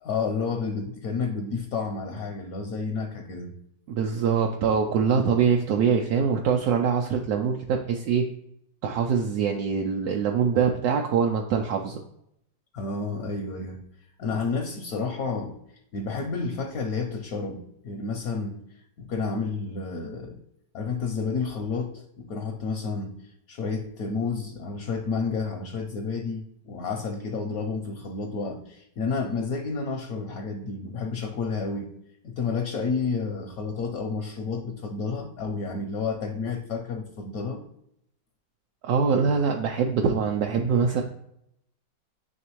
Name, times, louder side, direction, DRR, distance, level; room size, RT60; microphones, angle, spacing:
voice 1, 0.0-3.5 12.7-13.8 14.2-15.6 15.9-18.6 19.0-20.4 20.7-31.9 32.2-37.6, left 4 dB, 70° left, 4 dB, 0.9 m, -30 dB
voice 2, 3.9-8.3 8.8-12.0 38.8-41.0, right 6 dB, 70° right, 2 dB, 0.9 m, -24 dB
9.5 x 3.3 x 3.0 m, 0.75 s
omnidirectional pair, 2.0 m